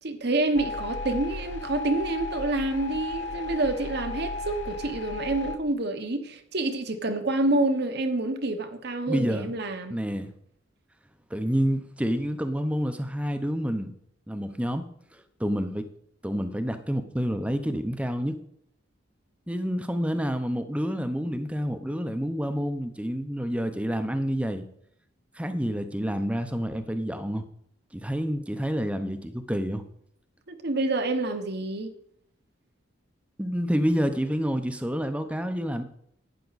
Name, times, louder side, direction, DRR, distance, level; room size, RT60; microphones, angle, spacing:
voice 1, 0.0-10.0 30.5-31.9, right 2 dB, 55° right, 1.1 m, -28 dB
sound 1, 0.5-5.6, left 2 dB, 65° left, 0.9 m, -35 dB
voice 2, 9.1-9.5 9.9-10.3 11.3-13.9 14.3-14.9 15.4-15.9 16.2-18.3 19.5-24.7 25.3-27.4 27.9-29.8 33.4-35.8, equal, 5° right, 0.8 m, -28 dB
11.5 x 9.1 x 4.1 m
head